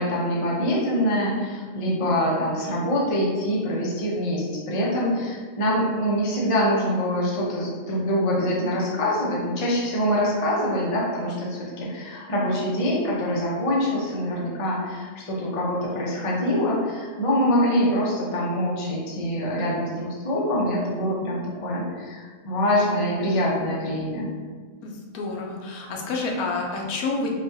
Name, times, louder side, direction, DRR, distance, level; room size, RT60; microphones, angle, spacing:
voice 1, 0.0-24.3, equal, 45° left, -5 dB, 0.4 m, -24 dB
voice 2, 24.8-27.3, left 3 dB, 80° left, -1 dB, 1.1 m, -29 dB
3.8 x 2.4 x 2.7 m, 1.5 s
omnidirectional pair, 1.6 m